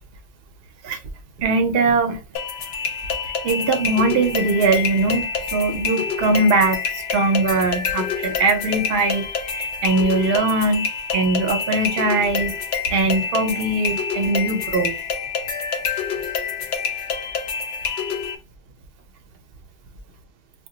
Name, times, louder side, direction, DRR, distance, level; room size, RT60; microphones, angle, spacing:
voice 1, 1.4-2.2 3.4-10.9 11.1-12.5 12.9-15.0, right 3 dB, 70° right, 0.8 m, -21 dB
sound 1, 2.4-18.4, left 6 dB, 85° left, 0.8 m, -27 dB
2.2 x 2.2 x 3.7 m
omnidirectional pair, 1.0 m